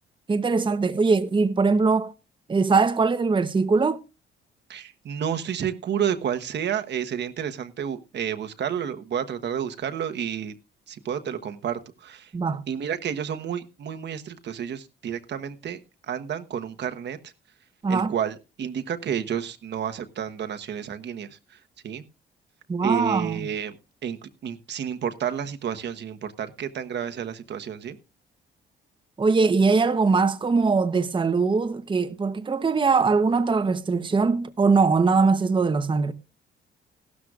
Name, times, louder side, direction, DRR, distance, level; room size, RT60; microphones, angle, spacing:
voice 1, 0.3-2.1 2.5-4.0 12.3-12.6 17.8-18.1 22.7-23.5 29.2-36.1, right 4 dB, 25° right, 0.9 m, -21 dB
voice 2, 4.7-10.5 10.9-12.3 12.7-17.3 17.9-21.6 21.8-22.0 22.8-23.8 24.0-28.0, right 8 dB, 60° right, 1.2 m, -30 dB
16.0 x 12.5 x 2.4 m
cardioid pair, 90°, 20 cm